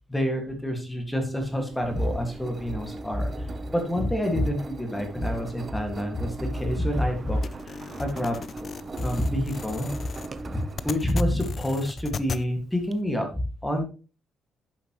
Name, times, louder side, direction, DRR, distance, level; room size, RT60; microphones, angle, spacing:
voice 1, 0.1-3.5 3.7-7.4 7.7-8.4 9.0-9.9 10.5-13.3 13.6-13.8, equal, 5° left, 3 dB, 1.9 m, -27 dB
Engine, 1.2-12.9, right 3 dB, 35° right, 0.8 m, -41 dB
sound 1, 7.4-12.4, left 6 dB, 40° left, 0.5 m, -36 dB
10.0 x 7.5 x 3.1 m, 0.34 s
cardioid pair, 130°, 0 cm